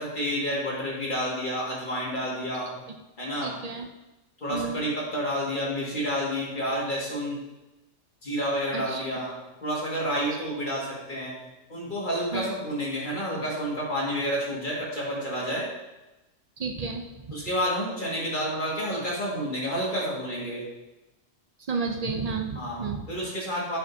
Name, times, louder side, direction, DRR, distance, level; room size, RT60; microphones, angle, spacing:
voice 1, 0.0-2.7 3.2-3.5 4.4-7.4 8.2-9.3 9.6-11.4 11.7-15.7 17.3-20.6 22.6-22.8 23.1-23.8, equal, 40° left, -5 dB, 2.0 m, -29 dB
voice 2, 3.4-3.9 4.5-4.8 8.7-9.0 12.3-12.6 16.6-17.1 21.7-23.1, right 4 dB, 55° right, 3 dB, 0.4 m, -31 dB
8.7 x 5.1 x 2.7 m, 1.0 s
omnidirectional pair, 1.3 m